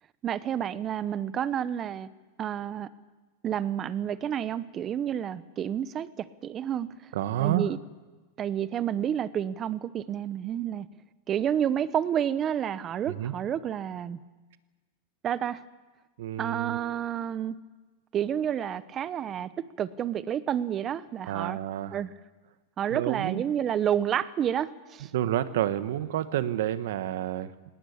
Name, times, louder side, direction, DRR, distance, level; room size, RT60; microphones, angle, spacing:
voice 1, 0.2-2.1 2.4-2.9 3.4-6.9 7.4-7.8 8.4-10.9 11.3-14.2 15.2-15.6 16.4-17.6 18.1-19.5 19.8-21.6 21.9-22.1 22.8-25.1, right 9 dB, 30° right, 16 dB, 0.9 m, -30 dB
voice 2, 7.1-7.7 13.1-13.3 16.2-17.0 21.3-22.0 22.9-23.4 25.1-27.5, right 12 dB, 75° right, 13 dB, 1.3 m, -29 dB
19.0 x 18.5 x 8.7 m, 1.2 s
hypercardioid pair, 125°, 0 cm